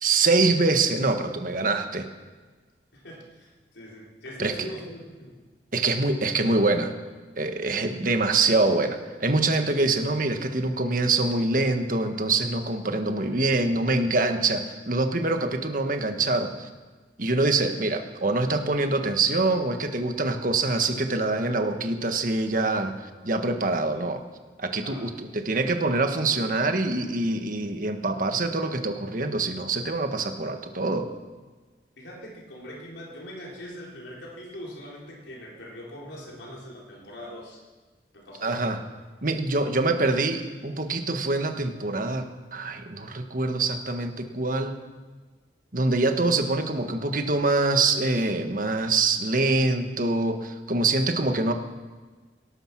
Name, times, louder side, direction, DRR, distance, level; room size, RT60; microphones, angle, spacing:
voice 1, 0.0-2.1 4.4-4.7 5.7-6.9 7.4-16.7 17.2-24.2 24.6-31.1 38.4-38.8 39.2-44.7 45.7-51.5, right 3 dB, 50° right, 6 dB, 1.4 m, -25 dB
voice 2, 2.9-5.4 7.6-7.8 17.3-17.5 23.6-24.2 24.7-25.0 32.0-37.6 38.1-38.7, equal, 80° left, -3 dB, 4.2 m, -42 dB
18.5 x 12.5 x 6.1 m, 1.4 s
head